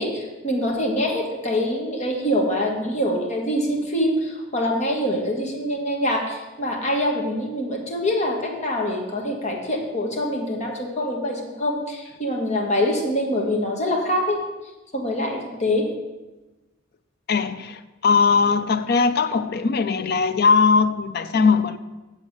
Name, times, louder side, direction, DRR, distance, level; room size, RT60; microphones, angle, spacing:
voice 1, 0.0-14.4 14.9-15.9, left 1 dB, 35° left, 1.6 m, -24 dB
voice 2, 17.3-21.8, left 5 dB, 50° left, 0.5 m, -20 dB
7.4 x 7.2 x 6.6 m
head